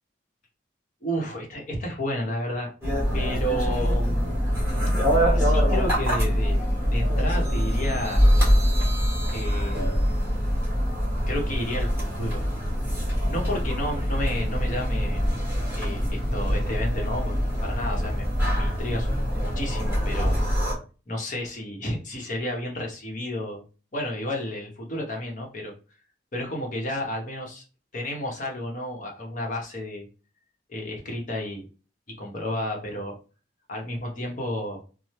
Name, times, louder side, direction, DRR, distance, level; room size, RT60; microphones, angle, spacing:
voice 1, 1.0-2.7 3.1-4.4 5.2-6.6 6.9-8.2 9.3-10.1 11.3-12.4 13.2-15.2 15.8-17.4 17.6-18.2 18.5-19.2 19.4-20.4 21.1-23.6 23.9-25.7 26.3-27.6 27.9-30.1 30.7-31.6 32.1-33.1 33.7-34.8, left 1 dB, 45° left, 0 dB, 0.9 m, -31 dB
sound 1, 2.8-20.7, equal, 15° right, 1.4 m, -24 dB
3.0 x 2.0 x 3.1 m, 0.35 s
head